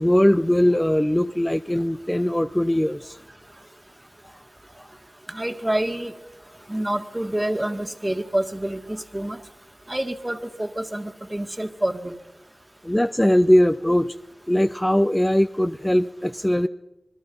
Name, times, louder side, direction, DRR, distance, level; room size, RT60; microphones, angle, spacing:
voice 1, 0.0-3.2 12.8-14.2 14.5-16.7, equal, 10° left, 12 dB, 0.6 m, -20 dB
voice 2, 5.3-6.1 6.7-9.4 9.9-12.1, right 1 dB, 20° right, 8 dB, 1.8 m, -27 dB
26.0 x 20.5 x 5.4 m, 0.99 s
wide cardioid pair, 55°, 0 cm